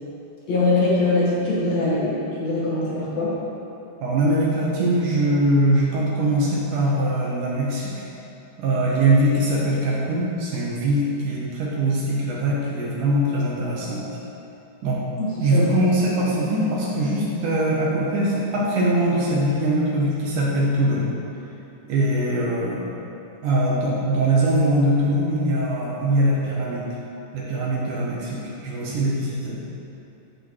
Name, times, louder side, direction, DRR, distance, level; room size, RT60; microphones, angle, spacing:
voice 1, 0.5-3.4 15.2-15.7, left 2 dB, 50° left, -8 dB, 2.6 m, -22 dB
voice 2, 4.0-7.9 8.6-14.1 14.8-15.0 15.4-21.1 21.9-22.9 23.4-26.9 27.3-29.6, right 1 dB, 65° right, -5 dB, 2.7 m, -22 dB
10.5 x 7.4 x 4.7 m, 2.8 s
omnidirectional pair, 4.3 m